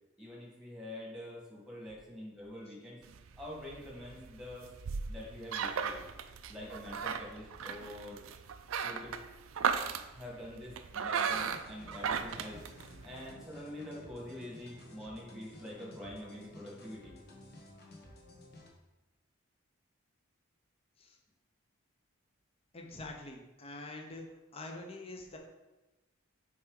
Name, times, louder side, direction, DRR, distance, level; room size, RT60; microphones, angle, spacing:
voice 1, 0.2-3.0 3.4-4.7 5.1-6.0 6.5-8.2 8.7-9.2 10.1-12.6 13.0-17.2, left 1 dB, 5° right, -4 dB, 1.5 m, -46 dB
sound 1, 3.0-13.3, right 6 dB, 80° right, 0.4 m, -37 dB
sound 2, 11.3-18.7, left 1 dB, 50° left, 1.0 m, -53 dB
voice 2, 22.7-24.3 24.5-25.4, left 2 dB, 30° left, 2 dB, 0.7 m, -45 dB
6.2 x 4.5 x 3.7 m, 1.1 s
head